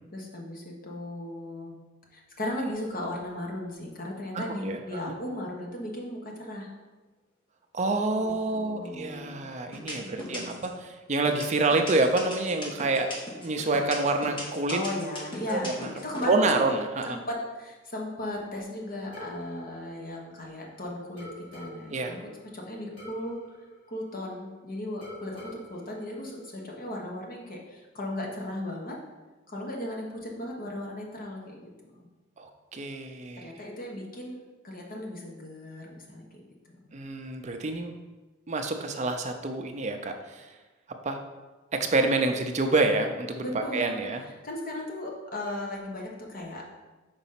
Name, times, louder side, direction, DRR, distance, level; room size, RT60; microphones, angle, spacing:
voice 1, 0.1-1.8 2.1-6.7 8.1-9.5 10.0-10.7 14.7-16.6 17.0-23.4 23.9-29.0 29.5-32.1 33.4-36.4 43.4-44.0 44.4-46.7, left 1 dB, 45° left, -1 dB, 1.3 m, -36 dB
voice 2, 4.3-4.8 7.7-14.8 15.5-15.9 16.3-17.2 21.9-22.1 32.4-33.5 36.9-38.0 38.5-40.5 41.0-41.2 41.7-44.2, right 2 dB, 35° right, 5 dB, 0.5 m, -27 dB
sound 1, 8.8-9.2 9.7-10.7 11.2-16.3, left 1 dB, 25° left, 1.2 m, -38 dB
sound 2, 19.1-20.7 21.2-24.6 25.0-27.0, equal, 80° left, 2.2 m, -47 dB
5.2 x 4.0 x 5.7 m, 1.2 s
head